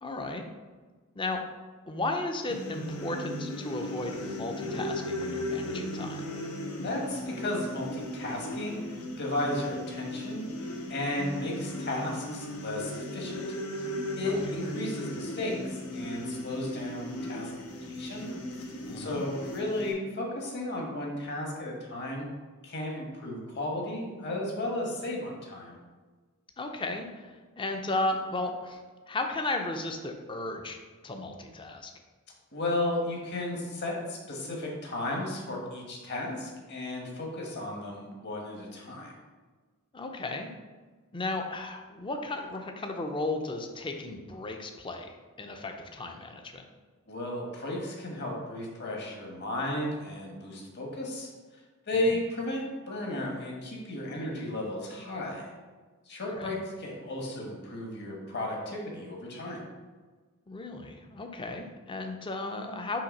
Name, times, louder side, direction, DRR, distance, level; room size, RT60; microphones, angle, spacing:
voice 1, 0.0-0.4 1.2-1.4 1.9-6.2 14.2-14.5 18.8-19.2 26.6-28.8 29.1-30.8 31.0-31.9 39.9-40.5 41.1-46.6 56.4-56.6 60.5-63.0, left 2 dB, 25° left, 4 dB, 0.5 m, -35 dB
sound 1, 2.5-19.9, left 1 dB, 85° left, 0.9 m, -37 dB
voice 2, 6.8-10.5 10.9-13.4 14.2-17.5 17.9-18.3 19.0-22.3 22.6-25.8 32.5-39.1 47.1-51.3 51.9-55.5 56.1-59.6, left 1 dB, 50° left, 0 dB, 1.3 m, -34 dB
5.7 x 3.2 x 5.3 m, 1.4 s
head